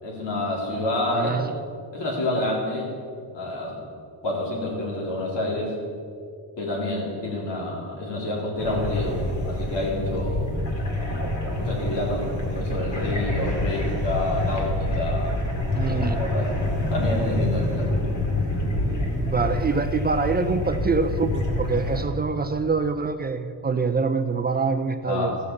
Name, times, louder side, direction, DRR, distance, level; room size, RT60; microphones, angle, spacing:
voice 1, 0.0-1.3 1.9-2.9 3.3-3.8 4.2-5.7 6.6-10.5 11.6-15.4 15.8-16.5 16.9-17.9 25.1-25.3, left 1 dB, 85° left, -2 dB, 3.4 m, -28 dB
voice 2, 1.1-1.5 15.7-16.2 19.2-25.4, right 4 dB, 25° right, 8 dB, 0.4 m, -25 dB
sound 1, 8.6-22.0, left 1 dB, 45° left, 2.2 m, -26 dB
14.0 x 6.5 x 7.0 m, 2.4 s
cardioid pair, 125°, 41 cm